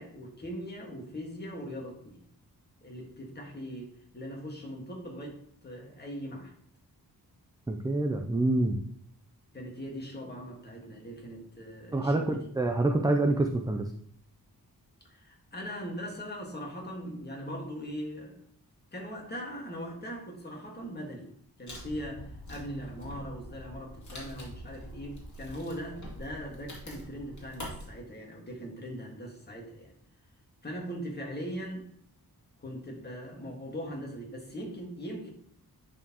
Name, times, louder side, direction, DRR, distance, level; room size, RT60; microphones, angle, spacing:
voice 1, 0.0-2.2 2.8-6.5 9.5-12.5 15.1-18.4 18.9-21.3 21.6-29.9 30.6-31.9 32.6-35.3, equal, 25° left, 0 dB, 1.6 m, -40 dB
voice 2, 7.7-8.8 11.9-13.9, right 2 dB, 10° right, 3 dB, 0.4 m, -27 dB
Wood, 21.7-27.9, equal, 50° left, 2.5 m, -45 dB
10.5 x 4.3 x 2.9 m, 0.65 s
wide cardioid pair, 170°, 38 cm